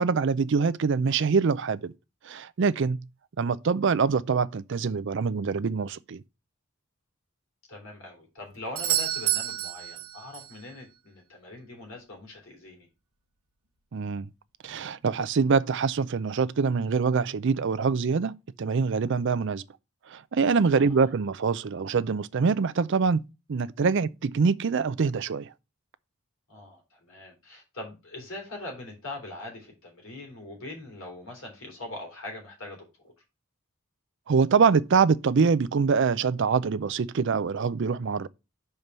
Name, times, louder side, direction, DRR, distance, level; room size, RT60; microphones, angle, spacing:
voice 1, 0.0-1.9 2.2-3.0 3.4-6.2 13.9-14.3 14.6-18.3 18.6-19.6 20.1-23.2 23.5-25.5 34.3-38.3, right 5 dB, 55° right, 0.4 m, -24 dB
voice 2, 7.7-12.9 20.7-21.1 26.5-33.1, left 2 dB, 65° left, 3.3 m, -42 dB
Doorbell, 8.8-10.6 14.7-14.8, right 12 dB, 75° right, 0.9 m, -29 dB
5.3 x 4.6 x 5.4 m
head